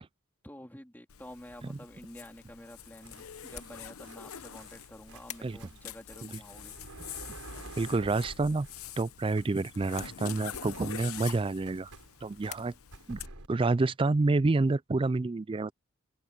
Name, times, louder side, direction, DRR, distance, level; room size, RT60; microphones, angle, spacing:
voice 1, 0.4-6.8 12.6-13.4, left 1 dB, 10° left, 3.3 m, -50 dB
Zipper (clothing), 1.1-13.3, left 9 dB, 75° left, 0.9 m, -46 dB
sound 1, 2.7-9.1 9.3-13.5, right 2 dB, 90° right, 4.2 m, -50 dB
voice 2, 7.8-8.7 9.0-11.9 12.2-12.7 13.1-13.2 13.5-15.7, right 3 dB, 25° right, 0.3 m, -28 dB
sound 2, 12.4-12.6, left 8 dB, 30° left, 2.5 m, -53 dB
open air
head